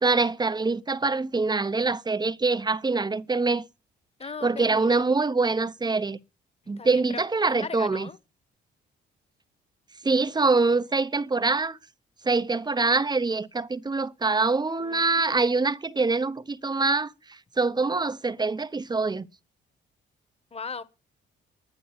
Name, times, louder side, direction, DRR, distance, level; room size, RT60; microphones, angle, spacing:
voice 1, 0.0-3.6 4.4-6.2 6.7-8.1 10.0-11.8 12.2-17.1 17.6-19.3, right 3 dB, 20° right, 0.8 m, -24 dB
voice 2, 4.2-5.0 6.8-8.2 14.8-15.2 20.5-20.8, left 5 dB, 30° left, 1.5 m, -38 dB
11.5 x 9.9 x 7.2 m
cardioid pair, 90°, 20 cm